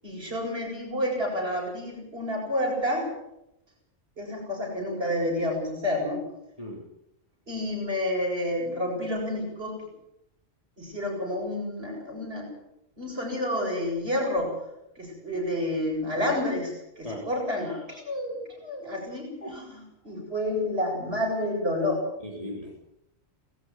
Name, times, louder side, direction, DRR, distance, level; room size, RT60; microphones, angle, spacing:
voice 1, 0.0-3.1 4.2-6.2 7.5-9.8 10.8-12.5 13.0-14.5 14.9-22.0, left 1 dB, 50° right, -2 dB, 8.4 m, -29 dB
voice 2, 22.2-22.9, equal, 25° left, -2 dB, 3.8 m, -37 dB
19.5 x 15.0 x 9.6 m, 0.83 s
omnidirectional pair, 1.3 m